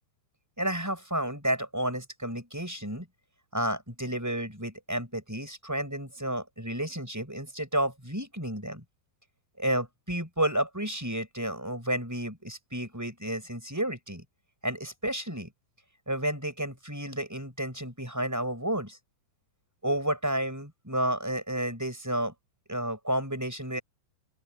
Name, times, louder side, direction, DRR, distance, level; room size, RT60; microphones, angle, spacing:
voice 1, 0.6-3.1 3.5-8.8 9.6-14.2 14.6-15.5 16.1-19.0 19.8-22.3 22.7-23.8, right 1 dB, 5° right, 5.4 m, -31 dB
open air
omnidirectional pair, 5.8 m